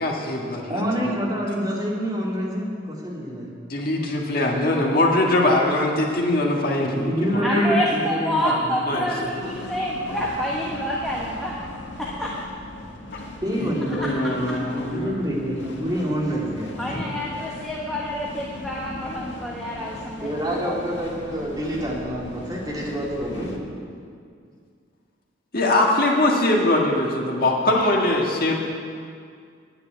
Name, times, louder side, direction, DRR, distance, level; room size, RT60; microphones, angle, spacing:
voice 1, 0.0-1.1 3.7-7.8 8.9-9.3 13.1-13.2 13.6-15.2 25.5-28.5, left 1 dB, 50° left, -1 dB, 1.7 m, -22 dB
voice 2, 0.6-3.5 7.1-8.8 13.4-17.1 20.2-24.1, equal, 20° right, -4 dB, 2.5 m, -27 dB
sound 1, 6.2-6.3 7.7-23.6, left 1 dB, 65° left, 1.8 m, -39 dB
voice 3, 7.4-11.6 12.0-12.3 14.0-14.1 14.5-14.6 16.8-20.7, equal, ahead, -5 dB, 1.2 m, -28 dB
9.8 x 9.7 x 9.5 m, 2.2 s
head